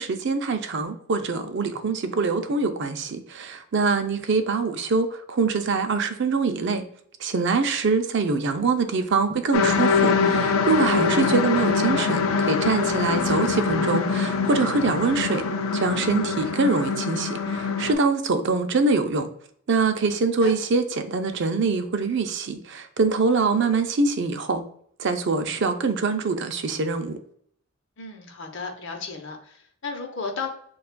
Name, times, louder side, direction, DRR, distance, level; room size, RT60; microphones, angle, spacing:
voice 1, 0.0-6.8 7.2-15.5 15.7-19.3 19.7-24.6 25.0-27.2, right 4 dB, 55° right, 7 dB, 0.5 m, -24 dB
sound 1, 9.5-17.9, left 5 dB, 80° left, 0.5 m, -24 dB
voice 2, 28.0-30.5, left 4 dB, 60° left, 3 dB, 0.8 m, -34 dB
6.7 x 2.3 x 2.2 m, 0.63 s
head